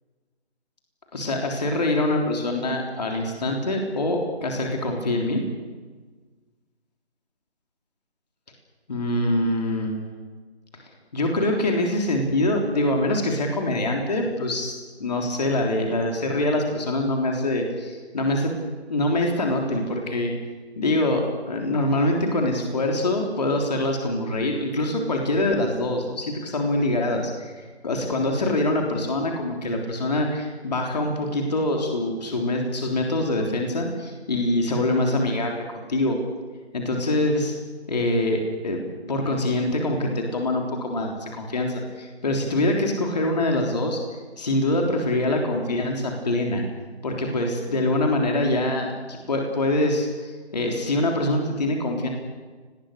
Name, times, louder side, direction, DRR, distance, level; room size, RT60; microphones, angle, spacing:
voice 1, 1.1-5.4 8.9-10.2 11.1-18.6 18.9-20.3 20.8-36.2 36.7-37.5 37.9-44.0 44.4-46.6 47.0-52.1, left 1 dB, 40° left, 1 dB, 3.7 m, -24 dB
29.5 x 20.0 x 6.7 m, 1.4 s
figure-of-eight pair, 160°, 33 cm